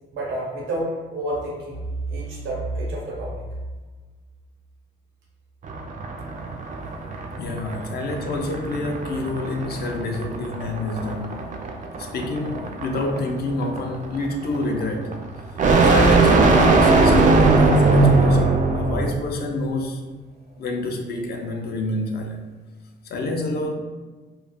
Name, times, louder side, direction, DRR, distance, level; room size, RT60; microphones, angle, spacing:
voice 1, 0.1-1.8 2.1-3.5 7.7-8.0, right 1 dB, 85° right, -4 dB, 0.8 m, -29 dB
sound 1, 5.6-19.2, right 3 dB, 40° right, 0.4 m, -20 dB
voice 2, 7.4-11.5 12.0-15.2 15.8-20.0 20.6-22.4 23.0-23.7, left 2 dB, 55° left, 3 dB, 0.5 m, -28 dB
2.3 x 2.0 x 3.4 m, 1.3 s
cardioid pair, 90°, 20 cm